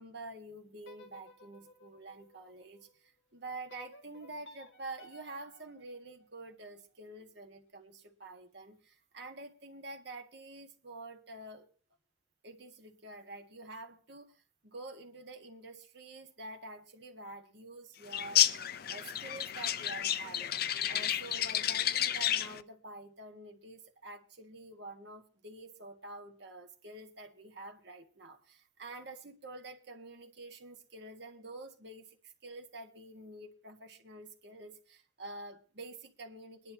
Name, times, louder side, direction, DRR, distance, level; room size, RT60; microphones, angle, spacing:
voice 1, 0.0-11.7 12.4-14.3 14.6-18.5 18.9-20.5 20.9-36.7, right 2 dB, 55° right, 1.7 m, -48 dB
sound 1, 0.8-3.0 3.7-6.8, left 1 dB, 65° left, 1.8 m, -57 dB
sound 2, 18.1-22.6, left 11 dB, 50° left, 0.5 m, -31 dB
22.5 x 10.5 x 2.9 m
head